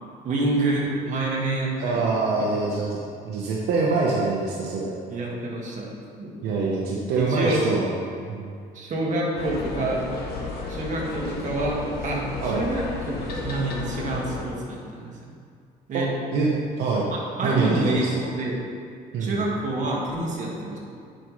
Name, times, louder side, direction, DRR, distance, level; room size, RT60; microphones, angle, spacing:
voice 1, 0.2-2.0 5.1-5.9 6.2-6.4 7.2-7.7 8.7-10.0 10.7-15.1 15.9-16.1 17.1-18.6 19.2-20.8, right 2 dB, 45° right, -3 dB, 1.7 m, -27 dB
voice 2, 1.8-3.0 3.2-4.9 6.4-7.9 8.3-8.5 12.4-12.6 15.9-16.0 16.3-16.5 16.8-17.1 17.4-18.2 19.1-19.4, right 3 dB, 80° right, -3 dB, 0.9 m, -25 dB
sound 1, 9.4-14.4, left 3 dB, 70° left, 1.2 m, -33 dB
9.8 x 5.3 x 3.1 m, 2.3 s
cardioid pair, 110°, 17 cm